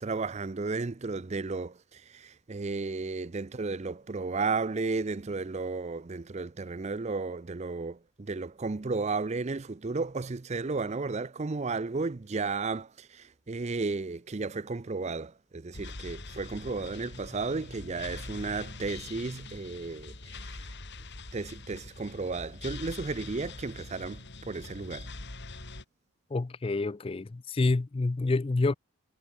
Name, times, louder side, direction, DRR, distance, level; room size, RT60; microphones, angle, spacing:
voice 1, 0.0-20.7 21.3-25.1, right 3 dB, 30° right, 0.5 m, -33 dB
sound 1, 15.7-25.8, left 3 dB, 50° left, 3.5 m, -43 dB
voice 2, 26.3-28.7, left 3 dB, 25° left, 0.4 m, -28 dB
head